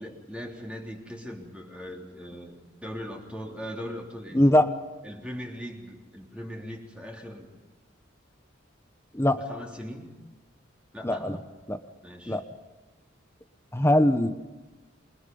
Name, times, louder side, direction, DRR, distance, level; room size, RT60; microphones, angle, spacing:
voice 1, 0.0-4.5 5.0-7.5 9.5-10.1 10.9-11.4 12.0-12.4, equal, 5° right, 0 dB, 3.6 m, -40 dB
voice 2, 4.3-4.7 9.1-9.4 11.0-11.4 11.7-11.8 12.3-12.4 13.7-14.4, left 1 dB, 15° left, 9 dB, 1.1 m, -21 dB
28.5 x 23.5 x 5.5 m, 1.2 s
head